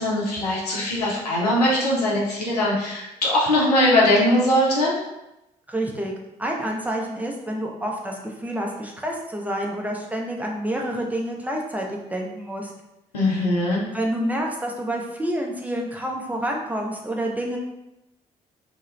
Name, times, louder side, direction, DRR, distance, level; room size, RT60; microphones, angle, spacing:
voice 1, 0.0-5.0 13.1-13.8, left 1 dB, 80° left, -4 dB, 0.5 m, -21 dB
voice 2, 5.7-6.1 6.4-12.7 13.9-17.6, right 1 dB, 10° right, -1 dB, 0.5 m, -28 dB
2.2 x 2.1 x 3.1 m, 0.91 s
figure-of-eight pair, 40°, 20 cm